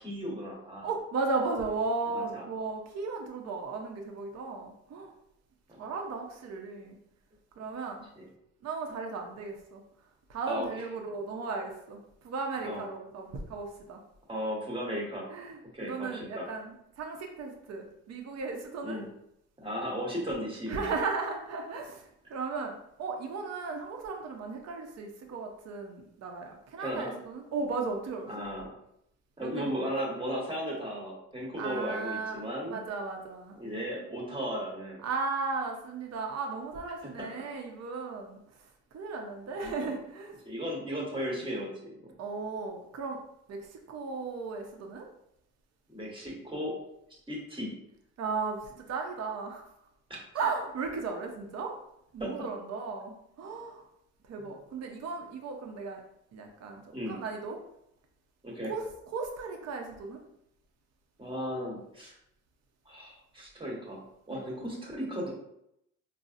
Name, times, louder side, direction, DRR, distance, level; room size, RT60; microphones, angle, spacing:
voice 1, 0.0-0.9 2.1-2.5 5.7-5.8 8.2-8.3 10.5-10.7 12.6-12.8 14.3-15.2 15.7-16.5 18.8-19.1 19.6-20.9 26.8-27.1 28.3-28.7 29.4-32.8 33.6-35.0 37.0-37.3 39.5-39.9 40.4-42.1 45.9-46.7 47.3-47.7 52.2-52.5 54.4-54.5 56.9-57.2 58.4-58.7 61.2-62.1 62.9-65.3, equal, 15° right, -3 dB, 1.2 m, -36 dB
voice 2, 0.8-5.1 5.8-7.0 7.6-8.1 8.6-9.8 10.3-14.0 15.3-19.0 20.7-28.4 29.4-29.7 31.6-32.4 32.7-33.6 35.0-38.4 38.9-40.3 42.2-43.2 43.5-45.1 48.2-49.7 50.3-51.7 52.1-53.8 54.3-56.0 56.3-57.6 58.6-60.2 64.3-64.4, right 4 dB, 60° right, 3 dB, 0.6 m, -36 dB
4.0 x 2.0 x 2.5 m, 0.78 s
cardioid pair, 90°, 30 cm